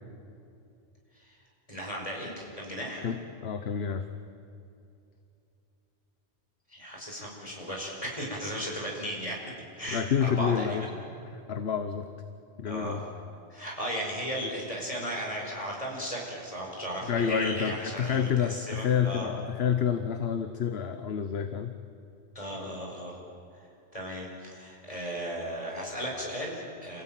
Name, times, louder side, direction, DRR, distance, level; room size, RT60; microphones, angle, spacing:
voice 1, 1.7-3.1 6.7-9.4 9.8-10.9 12.6-13.0 13.5-19.3 22.4-23.2 23.9-27.0, equal, 30° left, -1 dB, 5.5 m, -36 dB
voice 2, 3.0-4.1 9.9-10.9 11.5-12.1 12.6-13.0 17.0-21.7, left 7 dB, 60° left, 8 dB, 1.2 m, -28 dB
27.5 x 16.5 x 9.1 m, 2.7 s
omnidirectional pair, 1.2 m